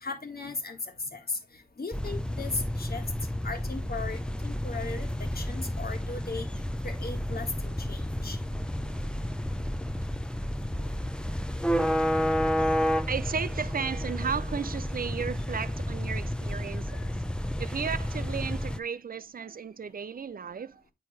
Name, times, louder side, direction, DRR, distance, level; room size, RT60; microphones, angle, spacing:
voice 1, 0.0-3.1 3.4-6.5 6.8-8.4 10.8-10.9, left 3 dB, 65° left, 1.6 m, -37 dB
sound 1, 1.9-18.8, equal, 5° left, 0.6 m, -31 dB
voice 2, 12.8-17.2 17.6-20.8, right 6 dB, 60° right, 0.4 m, -34 dB
8.5 x 4.5 x 3.3 m
wide cardioid pair, 90°, 17 cm